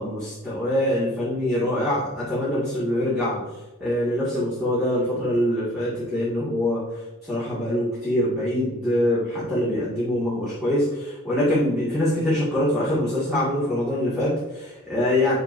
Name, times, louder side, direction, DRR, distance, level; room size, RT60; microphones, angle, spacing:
voice 1, 0.0-3.4 3.8-6.8 7.2-15.4, left 1 dB, 5° right, -10 dB, 2.2 m, -24 dB
7.9 x 6.6 x 2.7 m, 1.1 s
head